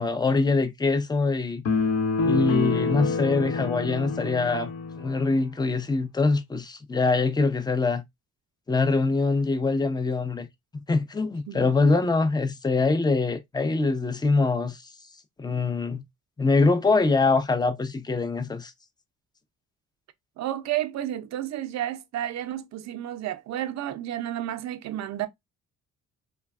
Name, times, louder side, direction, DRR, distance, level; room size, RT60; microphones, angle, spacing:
voice 1, 0.0-1.6 2.2-4.7 5.0-8.0 8.7-10.5 10.9-14.8 15.4-16.0 16.4-18.7, left 3 dB, 15° left, 0.5 m, -24 dB
sound 1, 1.7-5.2, left 4 dB, 55° left, 0.7 m, -26 dB
voice 2, 20.4-25.3, right 12 dB, 65° right, 0.5 m, -31 dB
3.2 x 2.2 x 2.3 m
cardioid pair, 90°, 30 cm